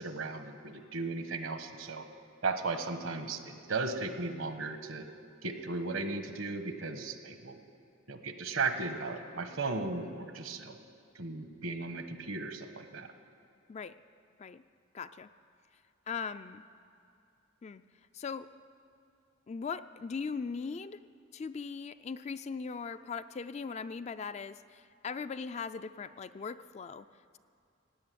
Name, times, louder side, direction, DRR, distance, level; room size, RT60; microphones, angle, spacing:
voice 1, 0.0-2.0 2.4-5.1 5.4-7.6 8.1-10.8 11.1-13.1, right 3 dB, 70° right, 7 dB, 1.2 m, -36 dB
voice 2, 14.9-15.3 16.1-16.6 17.6-17.8 18.1-18.5 19.5-21.0 21.3-27.1, left 5 dB, 30° left, 12 dB, 0.3 m, -39 dB
16.5 x 8.8 x 9.3 m, 2.5 s
head